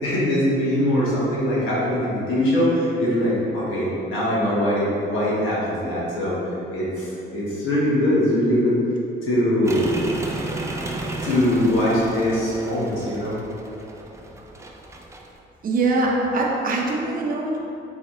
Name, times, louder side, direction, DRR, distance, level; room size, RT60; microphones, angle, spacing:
voice 1, 0.0-8.8 9.2-9.9 11.2-13.4, left 1 dB, 90° left, -7 dB, 1.1 m, -22 dB
sound 1, 9.7-15.4, right 2 dB, 15° right, 0.3 m, -33 dB
voice 2, 15.6-17.6, right 2 dB, 45° right, -2 dB, 0.7 m, -22 dB
4.0 x 2.8 x 3.0 m, 2.8 s
cardioid pair, 90°, 20 cm